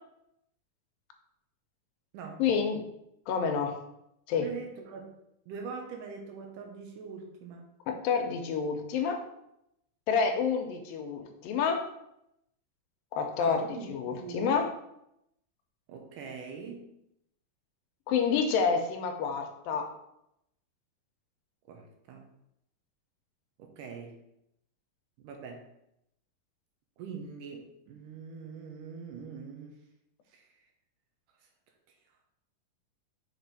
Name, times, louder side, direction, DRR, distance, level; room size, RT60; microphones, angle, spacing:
voice 1, 2.4-2.8 3.3-3.8 4.3-4.5 7.9-9.2 10.1-11.9 13.1-14.7 18.1-19.9, left 6 dB, 85° left, 5 dB, 2.4 m, -28 dB
voice 2, 4.4-5.2 5.5-7.7 13.4-14.5 15.9-16.9 21.7-22.3 23.6-24.2 25.2-25.7 27.0-29.8 30.3-30.5, right 5 dB, 75° right, 3 dB, 2.2 m, -43 dB
6.1 x 4.2 x 4.0 m, 0.81 s
omnidirectional pair, 4.0 m